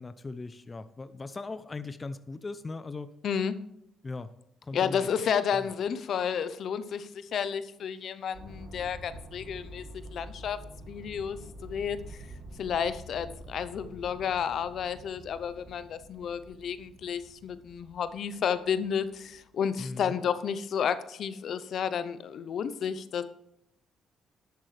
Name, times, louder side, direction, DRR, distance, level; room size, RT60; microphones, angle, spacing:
voice 1, 0.0-3.1 4.0-4.3 4.6-5.1 5.5-5.7 19.8-20.2, left 3 dB, 25° left, 13 dB, 0.5 m, -39 dB
voice 2, 3.2-3.6 4.7-10.6 10.9-12.3 12.6-23.2, left 7 dB, 65° left, 13 dB, 0.7 m, -31 dB
sound 1, 8.3-19.5, right 1 dB, 75° right, 2.1 m, -47 dB
11.0 x 8.3 x 3.3 m, 0.76 s
cardioid pair, 90°, 0 cm